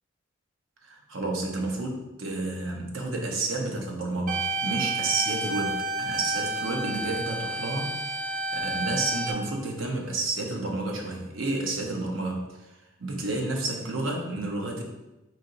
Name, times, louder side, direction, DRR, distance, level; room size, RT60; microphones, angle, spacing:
voice 1, 0.8-12.7 13.0-14.8, right 2 dB, 90° right, 1 dB, 0.7 m, -31 dB
sound 1, 4.3-9.3, right 3 dB, 45° right, 0.5 m, -30 dB
4.2 x 2.8 x 2.6 m, 1.0 s
head